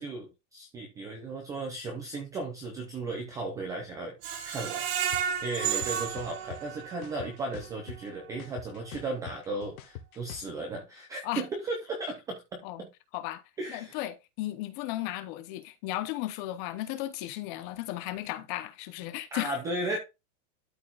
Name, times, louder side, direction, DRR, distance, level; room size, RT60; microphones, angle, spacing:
voice 1, 0.0-4.2 4.4-12.9 13.6-14.0 19.3-20.0, right 2 dB, 10° right, 0.4 m, -36 dB
Screech, 4.2-7.2 7.6-7.7 8.1-8.2, right 8 dB, 45° right, 1.9 m, -32 dB
sound 1, 5.1-5.2 5.6-6.6 7.0-8.1 8.4-10.5, left 9 dB, 75° left, 1.3 m, -43 dB
voice 2, 13.7-19.5, left 15 dB, 35° left, 0.8 m, -35 dB
12.5 x 4.5 x 2.4 m
supercardioid pair, 170°, 44 cm